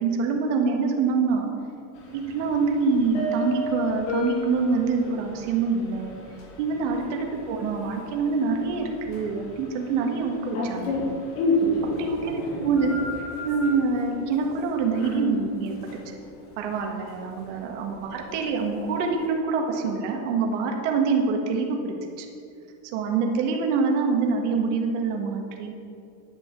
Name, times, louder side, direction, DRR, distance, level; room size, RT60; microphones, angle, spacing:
voice 1, 0.0-1.5 2.1-6.2 6.6-11.1 12.0-13.0 13.4-15.7 16.6-22.3 22.9-25.8, right 4 dB, 55° right, 2 dB, 1.7 m, -25 dB
sound 1, 2.0-19.3, left 1 dB, 65° left, 2.4 m, -33 dB
10.5 x 7.0 x 6.1 m, 2.5 s
supercardioid pair, 175°, 42 cm